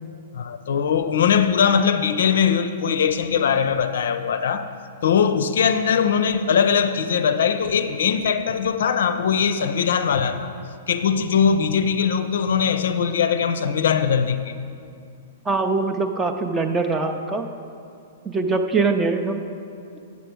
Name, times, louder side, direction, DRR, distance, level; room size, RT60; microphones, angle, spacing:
voice 1, 0.3-4.7 5.0-10.5 10.9-14.5, left 7 dB, 65° left, 11 dB, 0.5 m, -21 dB
voice 2, 15.5-17.5 18.2-19.4, right 3 dB, 15° right, 6 dB, 0.5 m, -22 dB
8.4 x 6.8 x 4.6 m, 2.4 s
figure-of-eight pair, 110°, 0 cm